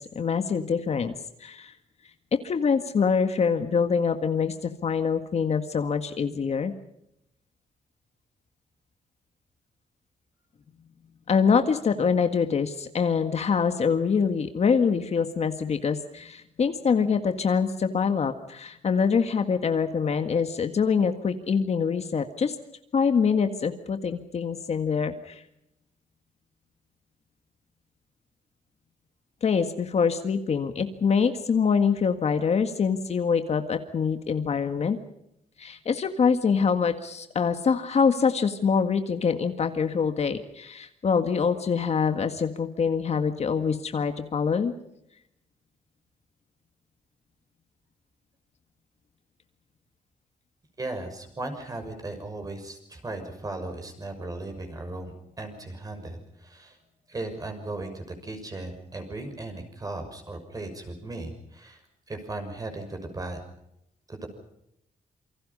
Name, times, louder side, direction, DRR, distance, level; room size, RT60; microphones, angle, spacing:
voice 1, 0.2-1.1 1.4-1.7 2.4-6.7 11.3-22.6 22.9-25.4 29.4-35.0 35.6-44.7, left 6 dB, 50° left, 7 dB, 1.9 m, -25 dB
voice 2, 50.8-56.8 57.1-61.8 62.1-63.4 64.1-64.3, right 2 dB, 25° right, 6 dB, 6.3 m, -37 dB
28.0 x 24.5 x 5.5 m, 0.78 s
wide cardioid pair, 135°, 15 cm